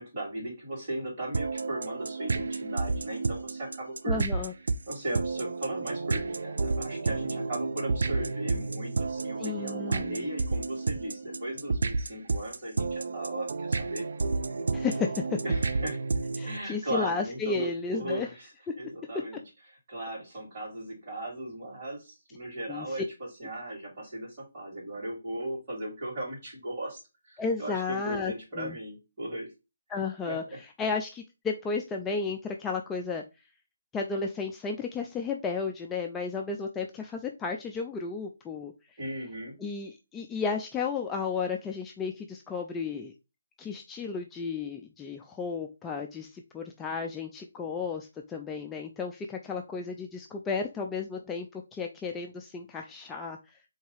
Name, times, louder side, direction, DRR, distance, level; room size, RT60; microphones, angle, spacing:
voice 1, 0.0-4.2 4.9-14.0 15.4-16.0 16.4-18.5 18.8-19.4 19.9-23.0 23.4-27.0 27.3-29.5 30.3-30.4 39.0-39.5, right 1 dB, 35° right, -4 dB, 3.0 m, -37 dB
sound 1, 1.3-16.6, right 3 dB, 70° right, 0.5 m, -31 dB
voice 2, 4.1-4.5 9.4-10.3 14.7-15.1 16.4-18.3 22.7-23.0 27.4-28.8 29.9-33.2 33.9-38.7 39.6-43.1 43.6-53.5, left 5 dB, 10° left, 2 dB, 0.4 m, -33 dB
3.9 x 2.8 x 4.6 m, 0.27 s
hypercardioid pair, 160°, 0 cm